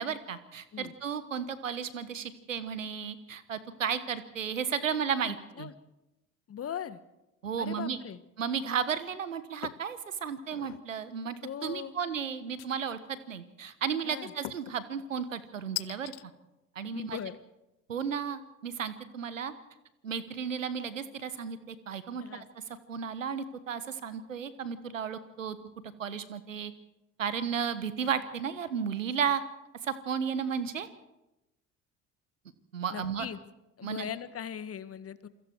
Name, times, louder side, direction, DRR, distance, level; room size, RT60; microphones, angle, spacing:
voice 1, 0.0-5.7 7.4-8.0 8.4-11.4 11.6-16.1 16.7-17.2 17.9-19.5 20.0-25.6 26.0-26.7 27.2-29.4 29.8-30.9 32.7-33.3 33.8-34.0, right 7 dB, 85° right, 14 dB, 1.3 m, -34 dB
voice 2, 5.3-5.7 6.5-7.0 7.6-8.2 11.4-11.9 14.0-14.3 16.9-17.4 22.2-22.5 32.9-33.4 33.8-35.3, left 9 dB, 40° left, 14 dB, 1.5 m, -39 dB
sound 1, 9.6-9.9 10.4-10.9 12.6-13.1 14.4-14.8 15.8-16.2, left 23 dB, 65° left, 0.8 m, -40 dB
28.0 x 22.5 x 4.7 m, 0.96 s
figure-of-eight pair, 60°, 38 cm